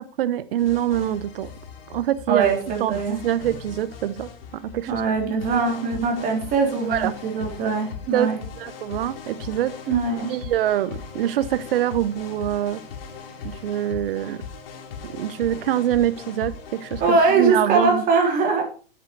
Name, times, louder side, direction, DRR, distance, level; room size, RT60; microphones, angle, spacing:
voice 1, 0.2-1.5 1.9-2.5 2.8-4.3 4.7-5.0 6.9-7.1 8.1-8.3 8.6-9.7 10.3-12.8 13.4-14.4 15.0-18.0, right 12 dB, 70° right, 14 dB, 0.9 m, -24 dB
sound 1, 0.6-17.4, left 6 dB, 80° left, 2.7 m, -39 dB
voice 2, 2.3-3.2 4.9-8.4 9.9-10.3 17.0-18.6, right 4 dB, 30° right, 1 dB, 3.5 m, -21 dB
9.0 x 7.7 x 4.6 m, 0.38 s
hypercardioid pair, 145°, 29 cm